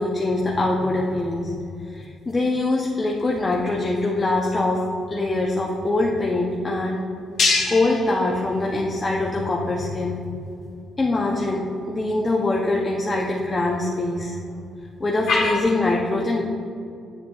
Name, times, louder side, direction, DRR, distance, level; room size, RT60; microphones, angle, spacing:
voice 1, 0.0-1.5 1.8-4.8 5.1-7.0 7.7-10.2 11.0-14.4 15.0-16.4, left 2 dB, 25° left, -2 dB, 0.6 m, -23 dB
sound 1, 0.8-15.6, left 3 dB, 60° left, 1.1 m, -32 dB
7.5 x 7.4 x 2.3 m, 2.5 s
cardioid pair, 90°, 0 cm